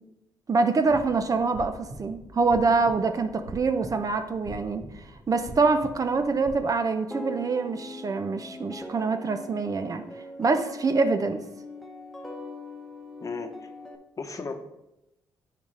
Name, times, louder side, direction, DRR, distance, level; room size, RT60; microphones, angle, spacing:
voice 1, 0.5-10.0 10.4-11.4, right 4 dB, 40° right, 8 dB, 0.6 m, -25 dB
sound 1, 0.9-6.5, right 1 dB, 75° right, 1.8 m, -44 dB
sound 2, 7.1-14.0, left 2 dB, ahead, 1.1 m, -41 dB
voice 2, 13.2-13.7 14.2-14.5, left 4 dB, 40° left, 6 dB, 1.0 m, -35 dB
9.8 x 4.2 x 3.4 m, 0.90 s
supercardioid pair, 55°, 9 cm